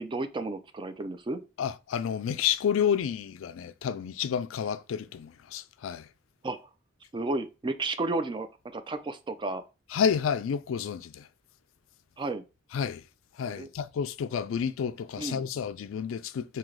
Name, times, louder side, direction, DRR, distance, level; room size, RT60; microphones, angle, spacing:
voice 1, 0.0-1.4 6.4-6.6 7.1-8.5 8.7-9.6 12.2-12.4 13.5-13.7 15.2-15.4, right 2 dB, 25° right, 0.4 m, -32 dB
voice 2, 1.6-6.1 9.9-11.3 12.7-13.0 13.4-16.6, left 7 dB, 80° left, 0.3 m, -30 dB
3.7 x 2.8 x 3.2 m
head